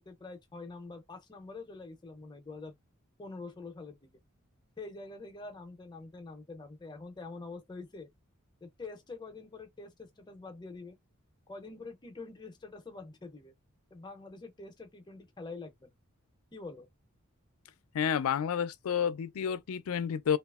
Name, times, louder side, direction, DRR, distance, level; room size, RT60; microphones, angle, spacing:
voice 1, 0.0-2.7 3.2-4.1 4.8-8.1 8.6-11.0 11.5-13.5 13.9-15.9 16.5-16.9, left 3 dB, 20° left, 0.5 m, -45 dB
voice 2, 17.9-20.4, left 8 dB, 80° left, 0.4 m, -30 dB
2.7 x 2.3 x 2.3 m
head